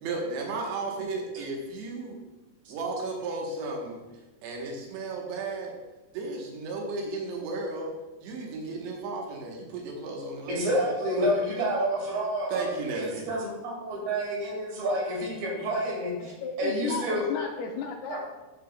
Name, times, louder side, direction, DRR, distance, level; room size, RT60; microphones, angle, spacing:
voice 1, 0.0-2.2 2.7-4.0 4.4-5.8 6.1-7.9 8.2-10.9 11.2-11.3 12.5-13.3, right 3 dB, 85° right, 0 dB, 3.3 m, -34 dB
voice 2, 10.5-12.7 13.0-16.3 16.6-17.2 18.1-18.2, equal, 70° right, -3 dB, 3.9 m, -29 dB
voice 3, 16.2-18.3, left 5 dB, 80° left, 3 dB, 2.4 m, -34 dB
13.5 x 5.7 x 2.2 m, 1.1 s
omnidirectional pair, 4.8 m